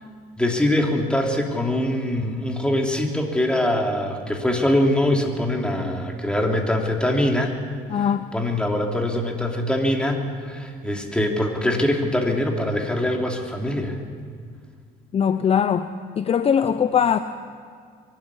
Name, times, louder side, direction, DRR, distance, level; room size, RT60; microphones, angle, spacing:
voice 1, 0.4-7.5 8.3-14.0, left 1 dB, 5° left, 1 dB, 3.0 m, -23 dB
voice 2, 7.9-8.3 15.1-15.9 16.2-17.2, left 8 dB, 35° left, 11 dB, 0.7 m, -20 dB
23.0 x 12.5 x 9.9 m, 2.1 s
cardioid pair, 110°, 17 cm